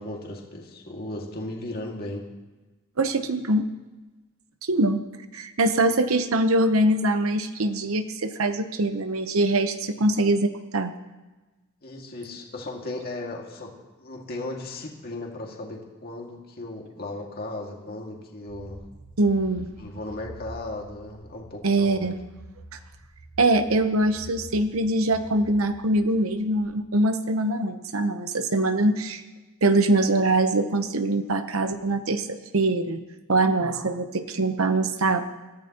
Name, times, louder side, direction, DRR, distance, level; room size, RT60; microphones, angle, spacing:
voice 1, 0.0-2.3 11.8-18.8 19.8-22.1, left 2 dB, 45° left, 0 dB, 2.0 m, -36 dB
voice 2, 3.0-3.7 4.7-5.0 5.3-10.9 19.2-19.7 21.6-22.1 23.4-29.2 29.6-33.0 33.3-35.3, right 2 dB, 75° right, 9 dB, 0.9 m, -23 dB
sound 1, 18.5-26.7, right 2 dB, 50° right, 5.3 m, -47 dB
22.0 x 14.0 x 2.9 m, 1.2 s
head